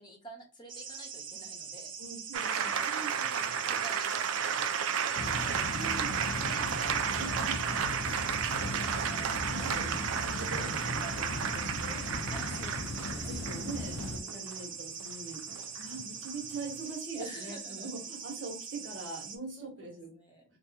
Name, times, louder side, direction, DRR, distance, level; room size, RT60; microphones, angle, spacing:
voice 1, 0.0-1.9 2.4-8.4 12.3-13.5 14.2-14.7 17.0-17.9 19.6-20.6, right 1 dB, 20° left, 0 dB, 0.9 m, -51 dB
sound 1, 0.7-19.4, right 7 dB, 40° right, 0.6 m, -42 dB
voice 2, 2.0-3.2 5.7-6.2 7.1-7.6 8.7-12.1 13.1-20.1, right 3 dB, 65° right, 1 dB, 1.3 m, -43 dB
sound 2, 2.3-16.8, right 7 dB, 85° right, 0.4 m, -33 dB
sound 3, 5.1-14.2, left 2 dB, 75° left, 0.6 m, -38 dB
2.8 x 2.5 x 3.4 m, 0.34 s
head